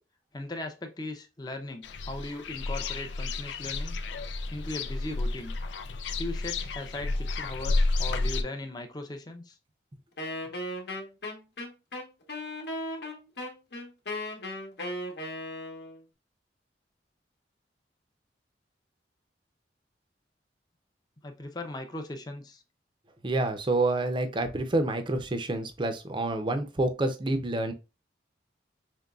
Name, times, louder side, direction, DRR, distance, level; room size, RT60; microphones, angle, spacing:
voice 1, 0.3-4.0 4.5-5.6 6.2-9.6 21.2-22.6, left 2 dB, 25° left, 5 dB, 0.5 m, -38 dB
sound 1, 1.8-8.4, left 3 dB, 90° left, 0.4 m, -31 dB
Wind instrument woodwind instrument, 10.2-16.0, left 1 dB, 70° left, 1.0 m, -36 dB
voice 2, 23.2-27.7, right 2 dB, 25° right, 8 dB, 0.5 m, -28 dB
5.2 x 3.1 x 2.4 m, 0.29 s
head